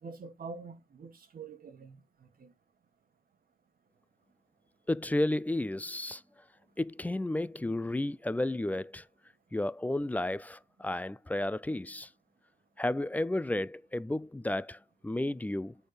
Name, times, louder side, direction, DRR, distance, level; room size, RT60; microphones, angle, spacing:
voice 1, 0.0-2.5, right 4 dB, 60° right, 1.5 m, -46 dB
voice 2, 4.9-6.2 6.8-9.1 9.5-12.1 12.8-15.8, left 1 dB, 10° left, 0.3 m, -32 dB
7.7 x 4.2 x 5.1 m
cardioid pair, 70°, 17 cm